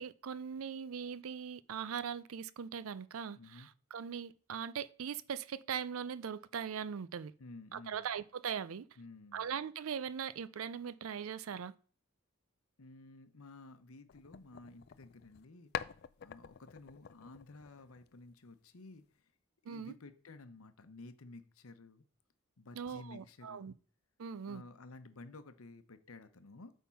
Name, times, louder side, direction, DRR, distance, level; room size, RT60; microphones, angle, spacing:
voice 1, 0.0-7.3 7.7-8.8 9.3-11.7 19.7-19.9 22.8-23.7 24.2-24.6, right 7 dB, 75° right, 0.4 m, -40 dB
voice 2, 3.3-3.7 7.4-8.1 9.0-9.5 12.8-15.7 16.2-19.1 19.6-22.0 22.6-23.7 24.5-26.7, left 3 dB, 85° left, 0.9 m, -53 dB
sound 1, 14.1-15.5 15.7-18.3, left 8 dB, 50° left, 0.3 m, -46 dB
8.4 x 3.7 x 5.6 m
head